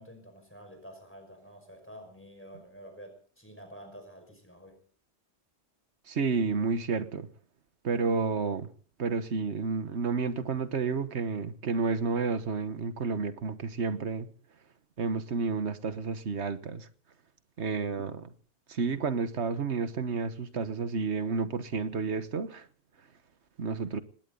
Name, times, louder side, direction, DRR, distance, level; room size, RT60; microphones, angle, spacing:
voice 1, 0.0-4.8, equal, 10° left, 5.4 m, -49 dB
voice 2, 6.1-7.3 7.8-8.7 9.0-14.3 15.0-16.9 17.6-18.3 18.7-22.7 23.6-24.0, right 4 dB, 85° right, 1.5 m, -30 dB
20.0 x 18.0 x 3.9 m
omnidirectional pair, 1.1 m